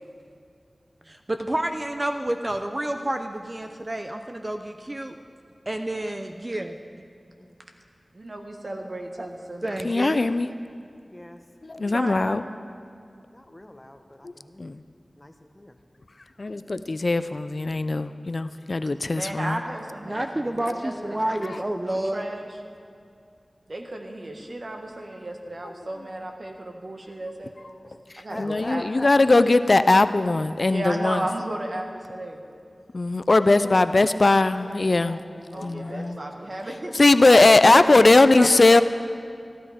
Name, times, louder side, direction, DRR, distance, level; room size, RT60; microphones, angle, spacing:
voice 1, 1.1-5.2 5.7-6.8 9.2-9.3 9.6-10.3 20.1-22.2, right 1 dB, 30° right, 6 dB, 0.6 m, -29 dB
voice 2, 8.1-9.8 11.8-12.4 19.1-20.3 20.6-21.1 21.5-21.6 21.8-22.5 23.7-27.9 28.2-28.8 30.7-32.4 35.5-36.9 37.2-38.8, right 1 dB, 55° right, 2 dB, 1.5 m, -34 dB
voice 3, 9.8-10.5 11.6-12.4 14.2-14.3 14.6-14.8 16.4-19.6 21.4-21.5 28.1-31.2 32.9-35.2 35.6-36.2 36.9-38.8, left 2 dB, 55° left, 12 dB, 0.4 m, -19 dB
voice 4, 11.1-11.4 13.3-14.8 15.2-15.8 20.1-21.6 28.3-29.4 33.3-36.6, left 1 dB, 20° left, 6 dB, 1.0 m, -43 dB
14.5 x 12.0 x 5.0 m, 2.4 s
wide cardioid pair, 55°, 0 cm